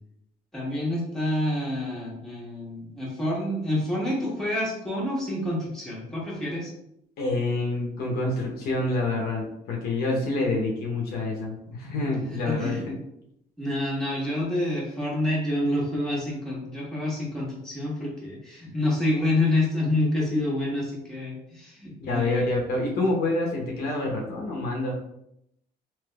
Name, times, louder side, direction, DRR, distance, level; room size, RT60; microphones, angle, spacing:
voice 1, 0.5-6.7 12.5-12.8 13.6-22.5, left 1 dB, 5° left, -5 dB, 1.2 m, -28 dB
voice 2, 7.2-13.0 22.0-24.9, left 2 dB, 65° left, -1 dB, 0.8 m, -27 dB
3.3 x 2.9 x 2.2 m, 0.78 s
cardioid pair, 110°, 17 cm